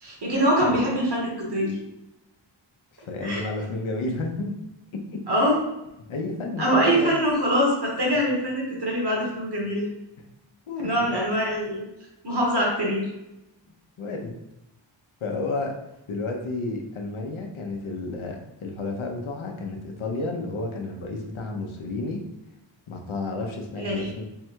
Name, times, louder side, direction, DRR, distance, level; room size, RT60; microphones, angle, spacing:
voice 1, 0.0-1.8 3.2-3.4 5.3-5.6 6.6-9.8 10.8-11.8 12.2-13.0 23.8-24.1, equal, 55° right, -3 dB, 1.4 m, -23 dB
voice 2, 3.1-4.5 5.1-5.2 6.1-7.1 10.7-11.1 14.0-14.3 15.2-15.7 16.1-22.2 22.9-24.2, left 3 dB, 85° left, 2 dB, 0.7 m, -31 dB
3.6 x 2.3 x 4.4 m, 0.91 s
wide cardioid pair, 80°, 47 cm